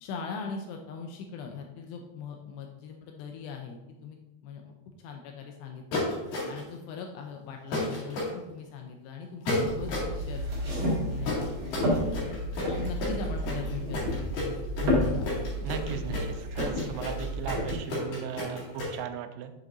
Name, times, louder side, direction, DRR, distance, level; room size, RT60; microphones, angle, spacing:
voice 1, 0.0-4.2 4.4-6.0 6.5-11.5 11.7-12.4 12.8-15.3, left 6 dB, 85° left, 3 dB, 2.6 m, -40 dB
sound 1, 5.9-6.7 7.7-8.3 9.5-10.1 11.2-18.9, left 2 dB, 55° left, 3.3 m, -32 dB
sound 2, 9.6-17.7, equal, 50° right, 2.1 m, -31 dB
voice 2, 15.6-19.5, right 8 dB, 90° right, 8 dB, 2.9 m, -37 dB
7.3 x 6.5 x 2.6 m, 0.96 s
omnidirectional pair, 5.2 m